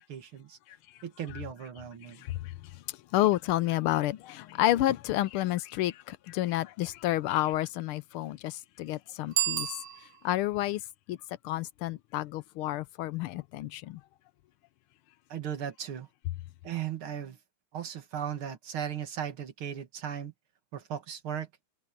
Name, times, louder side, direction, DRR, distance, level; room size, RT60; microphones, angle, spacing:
voice 1, 0.1-0.6 1.0-2.2 15.3-16.1 16.6-17.4 17.7-20.3 20.7-21.5, right 9 dB, 75° right, 2.6 m, -37 dB
voice 2, 2.2-2.5 3.1-9.8 10.2-10.8 11.1-11.2 11.4-14.0, left 15 dB, 85° left, 1.6 m, -30 dB
Bicycle bell, 9.3-10.5, right 12 dB, 60° right, 1.6 m, -32 dB
omnidirectional pair, 2.4 m